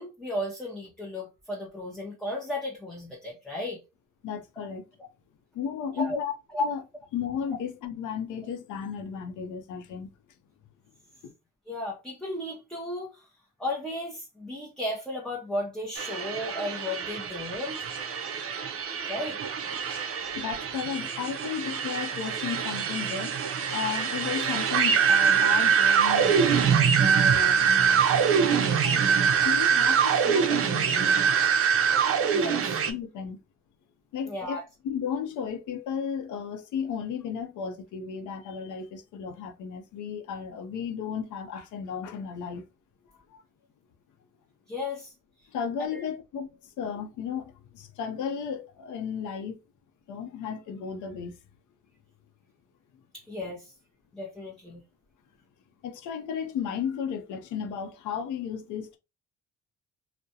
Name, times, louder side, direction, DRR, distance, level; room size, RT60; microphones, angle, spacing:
voice 1, 0.0-3.8 5.9-6.2 6.5-6.6 11.7-13.3 13.6-17.8 19.1-19.4 32.3-32.8 34.3-34.6 44.7-45.1 45.9-46.0 53.1-53.7 54.1-54.8, left 1 dB, ahead, 0.6 m, -34 dB
voice 2, 4.2-4.9 5.5-6.3 6.6-6.8 7.1-10.1 11.2-11.3 20.3-29.0 29.4-31.1 32.9-33.4 34.1-34.6 34.8-42.6 43.1-43.4 45.5-49.6 50.1-51.3 55.8-59.0, left 7 dB, 80° left, 0.6 m, -34 dB
sound 1, 16.0-32.9, right 7 dB, 50° right, 0.5 m, -24 dB
2.3 x 2.1 x 2.7 m
cardioid pair, 90°, 30 cm